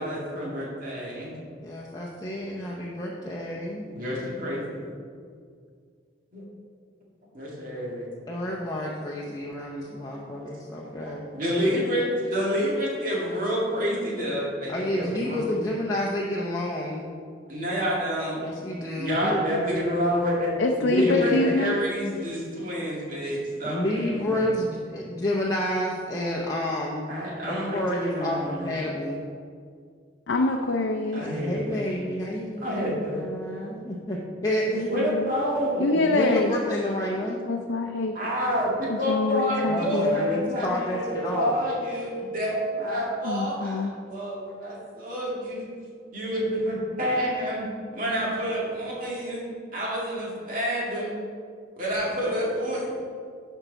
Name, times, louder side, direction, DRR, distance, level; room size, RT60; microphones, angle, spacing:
voice 1, 0.0-1.4 3.8-4.9 6.3-6.4 7.4-8.1 10.1-10.3 10.8-15.4 17.5-18.4 19.0-24.4 27.1-28.8 31.1-32.0 32.6-33.2 34.9-36.0 37.8-37.9 38.1-45.7 46.1-47.6 47.9-51.2 51.8-52.9, equal, 50° right, -4 dB, 2.1 m, -28 dB
voice 2, 1.6-3.9 8.3-11.3 14.7-17.1 18.4-19.4 21.0-21.5 23.6-27.2 27.5-29.3 31.2-34.7 36.1-37.4 39.7-41.6, left 1 dB, 20° left, -4 dB, 0.6 m, -30 dB
voice 3, 20.6-21.8 30.3-31.2 34.7-35.3 35.8-36.5 37.5-38.2 38.9-40.2 43.2-43.9, left 2 dB, 75° left, 2 dB, 0.5 m, -25 dB
11.5 x 4.6 x 4.0 m, 2.1 s
head